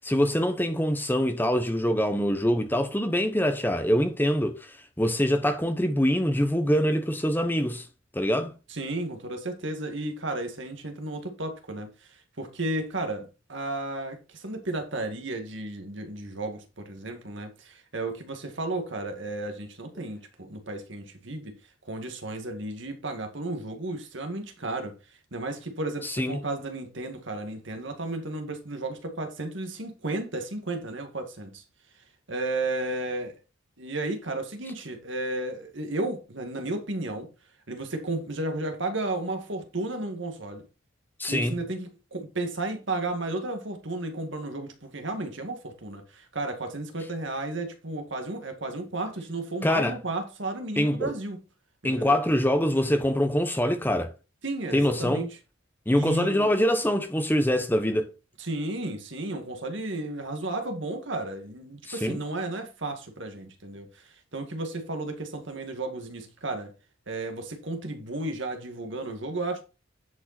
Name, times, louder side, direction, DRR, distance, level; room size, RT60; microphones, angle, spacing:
voice 1, 0.0-7.9 8.1-8.5 26.0-26.4 41.2-41.5 49.6-50.0 50.8-51.1 51.8-54.1 54.7-55.2 55.9-58.1 61.9-62.2, equal, 10° left, 1.0 m, -24 dB
voice 2, 8.7-21.5 21.9-24.9 25.3-31.6 32.3-33.4 33.8-37.3 37.7-40.6 41.3-51.4 51.8-52.2 54.4-55.4 55.9-56.5 58.4-66.7 67.1-69.6, right 2 dB, 60° right, 2.0 m, -33 dB
10.5 x 5.4 x 4.3 m
head